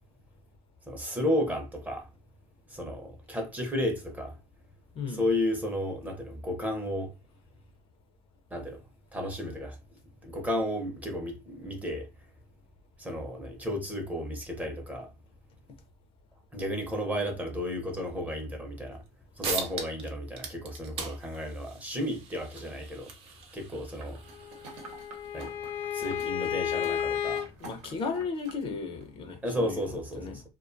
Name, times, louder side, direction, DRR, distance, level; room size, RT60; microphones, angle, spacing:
voice 1, 0.9-2.1 2.7-4.3 5.1-7.1 8.5-8.8 9.1-9.8 10.2-12.1 13.0-15.1 16.5-19.0 19.4-23.1 23.5-24.2 25.3-25.5 25.9-27.5 29.4-30.4, left 1 dB, 10° right, 0.6 m, -33 dB
sound 1, 19.1-19.2 19.4-20.1 20.3-25.5, right 5 dB, 45° right, 0.7 m, -40 dB
sound 2, 24.0-28.6 29.0-29.1, right 3 dB, 90° right, 0.8 m, -49 dB
Bowed string instrument, 24.3-27.5, left 9 dB, 85° left, 0.6 m, -32 dB
voice 2, 27.6-29.9 30.2-30.4, left 4 dB, 45° left, 0.5 m, -35 dB
2.4 x 2.2 x 2.5 m
cardioid pair, 130°, 14 cm